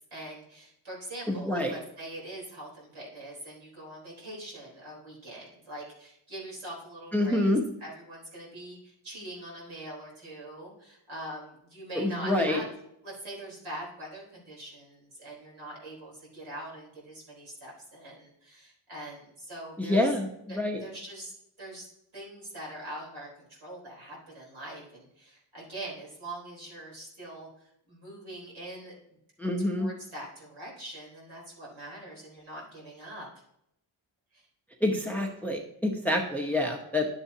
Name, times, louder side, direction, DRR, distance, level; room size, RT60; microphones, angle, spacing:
voice 1, 0.1-7.5 7.8-12.7 13.0-20.1 20.5-21.3 21.6-21.9 22.1-27.5 27.9-28.9 29.8-33.3 34.3-34.4, right 1 dB, 70° right, -4 dB, 3.8 m, -43 dB
voice 2, 1.3-1.8 7.1-7.6 12.0-12.6 19.8-20.8 29.4-29.9 34.8-37.1, left 1 dB, 5° left, 2 dB, 0.8 m, -27 dB
11.5 x 7.1 x 2.7 m, 0.76 s
wide cardioid pair, 165°, 50 cm